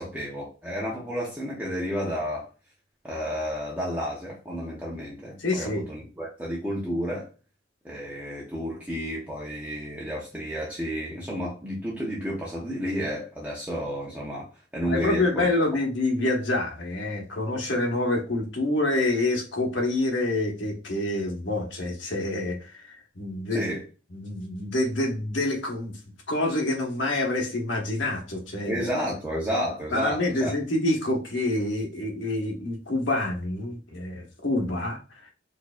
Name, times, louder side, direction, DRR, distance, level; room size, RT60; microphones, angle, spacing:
voice 1, 0.0-2.5 3.0-7.3 7.8-14.5 14.7-15.5 23.5-23.8 28.7-30.5, equal, 10° right, 0.7 m, -31 dB
voice 2, 5.4-5.8 14.9-23.7 24.1-26.0 26.3-28.9 29.9-35.3, left 2 dB, 70° left, 1.2 m, -27 dB
4.5 x 2.6 x 2.4 m
head